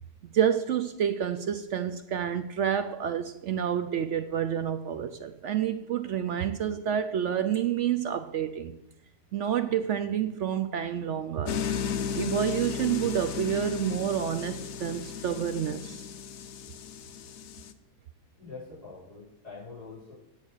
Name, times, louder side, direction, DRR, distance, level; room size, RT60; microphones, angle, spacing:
voice 1, 0.3-8.7 9.3-11.6 12.1-16.1, right 9 dB, 70° right, 10 dB, 0.7 m, -29 dB
sound 1, 11.4-17.7, left 7 dB, 65° left, 1.0 m, -35 dB
voice 2, 18.4-20.1, left 4 dB, 20° left, -10 dB, 5.3 m, -44 dB
9.6 x 7.1 x 6.5 m, 0.89 s
omnidirectional pair, 1.7 m